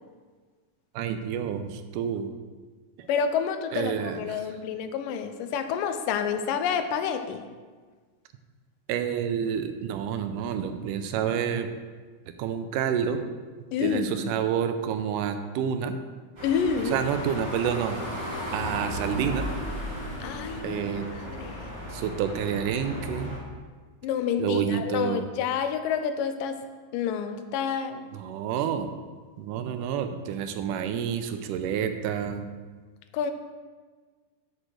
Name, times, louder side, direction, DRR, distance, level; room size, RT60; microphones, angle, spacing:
voice 1, 0.9-2.3 3.0-3.1 3.7-4.6 8.9-11.7 12.3-13.2 13.8-16.0 16.9-18.0 18.5-19.5 20.6-21.1 21.9-23.3 24.4-25.3 28.1-28.9 29.4-32.5, right 8 dB, 85° right, 8 dB, 2.1 m, -29 dB
voice 2, 3.1-7.5 13.7-14.3 16.4-17.0 20.2-20.8 21.4-21.7 24.0-26.6 26.9-28.1 33.1-33.3, left 7 dB, 90° left, 8 dB, 2.4 m, -28 dB
sound 1, 16.4-23.4, equal, 10° right, 2.6 m, -35 dB
7.5 x 6.4 x 6.3 m, 1.5 s
omnidirectional pair, 3.8 m